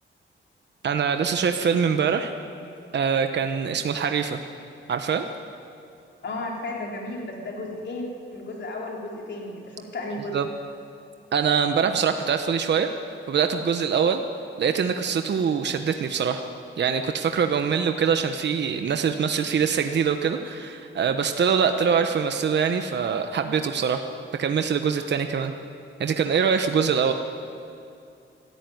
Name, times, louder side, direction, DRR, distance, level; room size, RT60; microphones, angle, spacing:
voice 1, 0.8-2.3 2.9-4.4 4.9-5.3 10.3-10.5 11.3-12.9 13.3-14.2 14.6-16.4 16.8-24.0 24.4-25.5 26.0-27.1, right 6 dB, 55° right, 7 dB, 1.1 m, -23 dB
voice 2, 6.2-10.3, left 2 dB, 60° left, -1 dB, 4.0 m, -34 dB
24.5 x 14.0 x 9.4 m, 2.6 s
wide cardioid pair, 145°, 21 cm